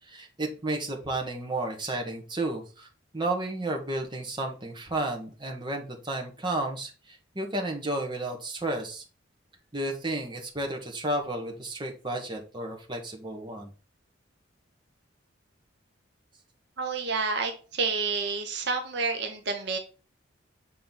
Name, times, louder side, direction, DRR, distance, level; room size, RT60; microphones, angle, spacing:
voice 1, 0.0-2.9 3.1-9.0 9.7-13.7, right 2 dB, 20° right, 1 dB, 1.1 m, -32 dB
voice 2, 16.8-19.8, right 4 dB, 55° right, 5 dB, 0.8 m, -29 dB
7.2 x 3.8 x 3.9 m, 0.35 s
head